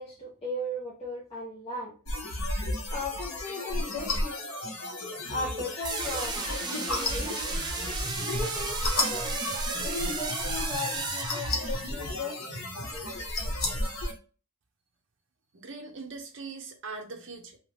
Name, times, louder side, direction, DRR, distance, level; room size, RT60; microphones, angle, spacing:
voice 1, 0.0-1.9 2.9-4.4 5.3-7.7 8.2-9.4 9.7-12.4, left 2 dB, 25° left, -5 dB, 0.6 m, -36 dB
sound 1, 2.1-14.1, left 1 dB, 70° left, 0.9 m, -33 dB
sound 2, 5.8-12.0, right 4 dB, 20° right, 0.3 m, -34 dB
voice 2, 15.5-17.6, right 4 dB, 55° right, 3 dB, 0.6 m, -41 dB
2.8 x 2.3 x 3.2 m, 0.36 s
head